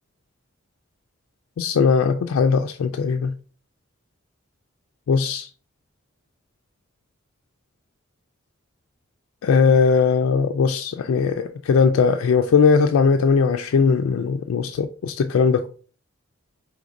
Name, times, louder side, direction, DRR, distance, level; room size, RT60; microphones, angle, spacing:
voice 1, 1.6-3.3 5.1-5.5 9.4-15.7, left 5 dB, 90° left, 0.3 m, -19 dB
5.0 x 3.3 x 2.5 m
head